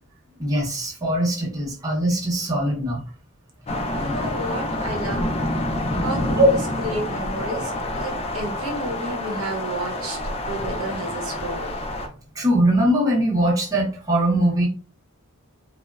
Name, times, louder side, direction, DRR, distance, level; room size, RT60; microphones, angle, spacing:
voice 1, 0.4-3.0 6.4-6.5 12.4-14.7, right 1 dB, 15° right, -4 dB, 0.6 m, -21 dB
sound 1, 3.7-12.1, left 1 dB, 25° left, 0.3 m, -27 dB
voice 2, 3.9-5.3 6.0-10.2 10.5-11.7, right 1 dB, 75° right, 0 dB, 0.8 m, -31 dB
2.9 x 2.0 x 2.3 m, 0.40 s
head